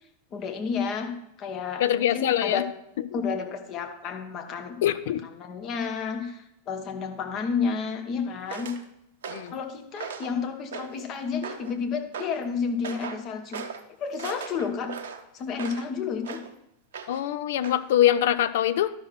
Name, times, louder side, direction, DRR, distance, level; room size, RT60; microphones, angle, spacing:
voice 1, 0.3-2.7 3.1-4.8 5.2-8.7 9.5-13.6 14.0-14.9 15.3-16.4, left 6 dB, 35° left, 5 dB, 1.2 m, -31 dB
voice 2, 1.8-2.6 4.8-5.2 9.3-9.6 17.1-18.9, left 11 dB, 55° left, 13 dB, 0.5 m, -23 dB
sound 1, 8.5-8.8 9.2-9.6 10.0-10.4 10.7-11.1 11.4-11.8 12.1-12.4 12.8-13.2 13.5-13.8 14.2-15.9 16.2-16.5 16.9-17.3 17.6-17.8, right 6 dB, 60° right, 0.8 m, -38 dB
12.0 x 5.9 x 4.5 m, 0.78 s
figure-of-eight pair, 90°, 0 cm